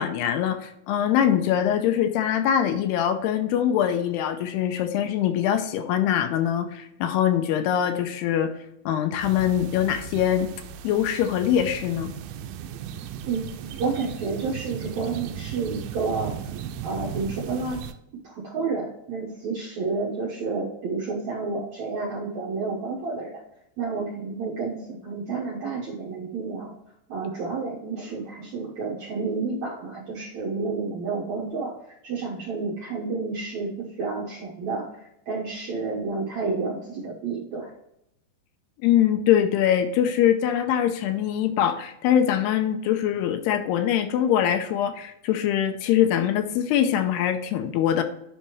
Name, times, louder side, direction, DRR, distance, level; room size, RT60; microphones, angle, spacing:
voice 1, 0.0-8.5 8.9-10.5 10.8-12.1 38.8-48.0, left 10 dB, 80° left, 8 dB, 2.5 m, -23 dB
sound 1, 9.2-17.9, right 9 dB, 85° right, 2.2 m, -37 dB
voice 2, 13.8-16.3 16.8-17.8 18.2-23.4 23.8-26.7 27.1-31.7 32.0-34.9 35.3-37.7, right 4 dB, 70° right, -4 dB, 1.8 m, -30 dB
9.8 x 5.6 x 3.1 m, 0.81 s
omnidirectional pair, 4.9 m